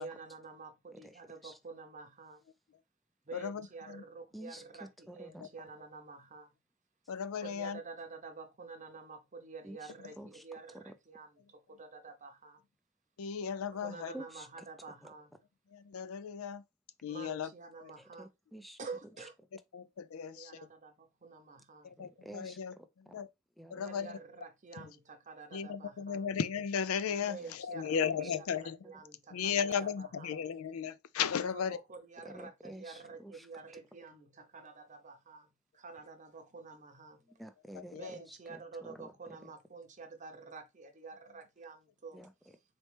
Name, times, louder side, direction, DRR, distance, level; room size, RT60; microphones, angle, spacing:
voice 1, 0.0-2.4 3.3-6.5 7.4-12.6 13.7-15.3 17.1-18.3 18.8-19.3 20.1-22.0 23.8-26.3 27.2-28.3 28.6-30.4 31.4-35.5 35.7-37.2 38.0-42.2, right 4 dB, 35° right, 0.7 m, -49 dB
voice 2, 0.9-1.6 4.3-5.5 9.6-10.5 10.7-10.9 14.1-14.7 15.0-15.1 18.0-18.8 21.8-23.2 23.6-23.8 27.4-27.5 28.2-28.4 28.8-29.0 32.2-33.5 33.7-33.8 37.2-39.5 42.1-42.6, right 1 dB, ahead, 0.4 m, -51 dB
voice 3, 3.3-4.0 7.1-7.8 13.2-14.1 15.7-16.6 17.0-17.5 17.8-18.0 19.7-20.7 21.8-22.7 23.1-23.3 23.7-24.1 24.8-24.9 25.5-28.8 29.3-31.8 37.8-38.1, left 7 dB, 85° left, 0.4 m, -35 dB
4.2 x 3.1 x 3.2 m
head